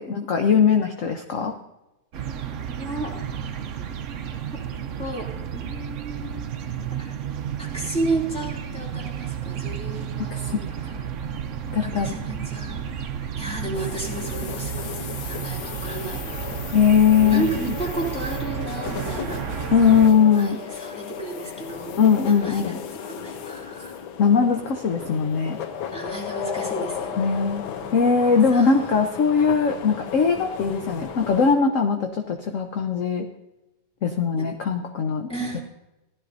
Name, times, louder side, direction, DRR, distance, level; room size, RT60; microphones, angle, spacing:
voice 1, 0.0-1.5 10.3-10.6 10.9-11.1 11.7-12.2 16.7-17.5 19.7-20.6 22.0-22.8 24.2-25.6 27.2-27.6 27.9-33.2 34.0-35.3, left 6 dB, 60° left, 5 dB, 0.9 m, -20 dB
sound 1, 2.1-20.1, right 8 dB, 60° right, 0.8 m, -32 dB
voice 2, 2.4-3.2 5.0-6.6 6.9-7.2 7.6-10.6 11.8-12.9 13.4-15.0 15.3-16.6 17.2-19.7 20.3-22.0 22.3-24.0 25.9-27.3 28.5-28.8 34.4-34.5 35.3-35.6, right 2 dB, 5° left, -2 dB, 2.5 m, -33 dB
sound 2, 13.7-31.5, left 7 dB, 85° left, 1.6 m, -35 dB
15.5 x 12.0 x 2.6 m, 0.94 s
omnidirectional pair, 2.1 m